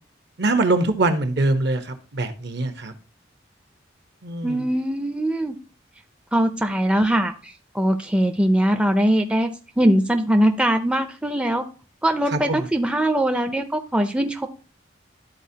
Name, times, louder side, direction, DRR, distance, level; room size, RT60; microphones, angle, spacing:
voice 1, 0.4-2.9 4.2-4.6 12.3-12.7, right 2 dB, 65° right, 8 dB, 1.0 m, -23 dB
voice 2, 4.4-5.5 6.3-9.5 9.8-11.6 12.0-14.5, right 1 dB, 5° right, 5 dB, 0.4 m, -21 dB
12.0 x 4.3 x 2.7 m, 0.36 s
head